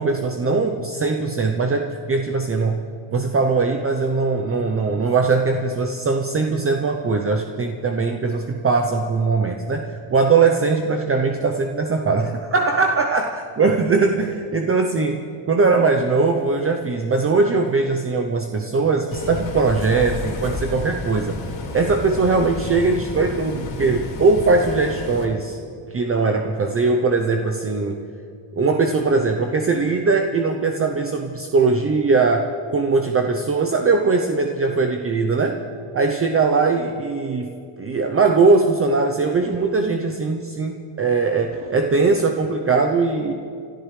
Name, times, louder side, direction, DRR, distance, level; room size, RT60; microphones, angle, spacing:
voice 1, 0.0-2.8 3.1-21.4 21.7-25.6 25.9-28.0 28.6-35.6 35.9-43.3, right 4 dB, 30° right, 4 dB, 0.7 m, -20 dB
Bus, 19.1-25.2, left 3 dB, 65° left, 3.1 m, -31 dB
29.5 x 13.0 x 3.3 m, 2.3 s
cardioid pair, 115°, 49 cm